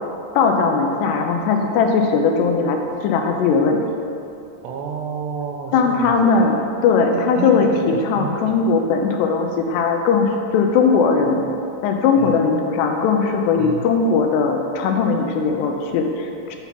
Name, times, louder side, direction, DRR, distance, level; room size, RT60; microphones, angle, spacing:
voice 1, 0.4-3.8 5.7-11.4 11.8-16.6, left 5 dB, 85° left, 4 dB, 2.8 m, -19 dB
voice 2, 4.6-6.6 7.1-8.6 12.2-12.4 13.6-13.9, right 5 dB, 85° right, 2 dB, 3.0 m, -30 dB
8.1 x 5.7 x 5.9 m, 2.6 s
omnidirectional pair, 4.8 m